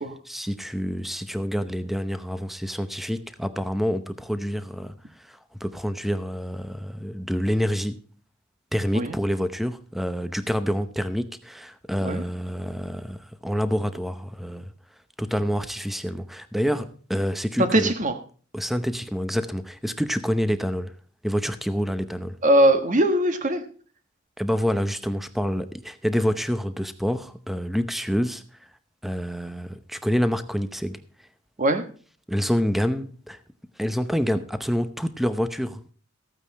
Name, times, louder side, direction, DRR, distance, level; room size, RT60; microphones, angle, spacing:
voice 1, 0.2-8.0 8.7-14.7 15.2-17.9 18.5-20.9 21.2-22.4 24.4-28.7 29.0-31.0 32.3-33.4 33.8-35.9, equal, ahead, 0.7 m, -27 dB
voice 2, 17.7-18.2 22.4-23.6 31.6-31.8, right 1 dB, 40° right, 1.4 m, -20 dB
14.5 x 8.9 x 4.1 m
head